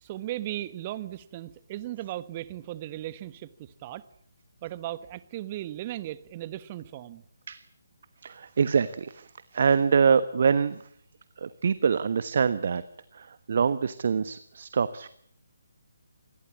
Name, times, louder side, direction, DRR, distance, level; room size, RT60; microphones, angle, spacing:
voice 1, 0.0-4.0 4.6-7.2, right 14 dB, 30° right, 16 dB, 1.3 m, -37 dB
voice 2, 8.2-9.3 9.5-10.8 11.4-12.8 13.1-15.1, right 6 dB, 50° right, 14 dB, 1.2 m, -25 dB
26.5 x 21.0 x 8.4 m, 0.63 s
figure-of-eight pair, 145°, 0 cm